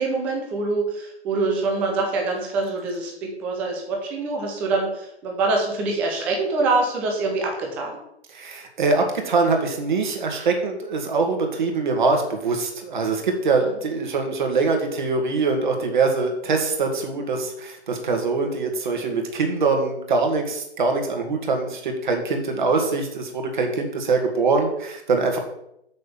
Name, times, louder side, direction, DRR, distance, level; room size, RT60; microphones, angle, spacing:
voice 1, 0.0-8.0 13.6-13.7, right 3 dB, 5° right, 1 dB, 0.5 m, -25 dB
voice 2, 8.3-25.4, right 4 dB, 45° right, 3 dB, 2.2 m, -23 dB
6.7 x 6.5 x 7.1 m, 0.78 s
figure-of-eight pair, 135°, 33 cm